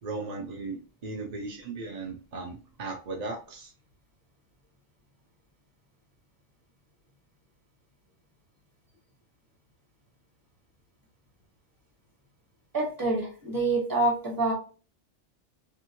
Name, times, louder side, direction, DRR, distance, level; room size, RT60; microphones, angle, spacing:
voice 1, 0.0-3.7, right 3 dB, 45° right, 0 dB, 0.6 m, -37 dB
voice 2, 12.7-14.5, right 2 dB, 20° right, -1 dB, 0.9 m, -26 dB
2.7 x 2.6 x 2.8 m, 0.36 s
omnidirectional pair, 1.1 m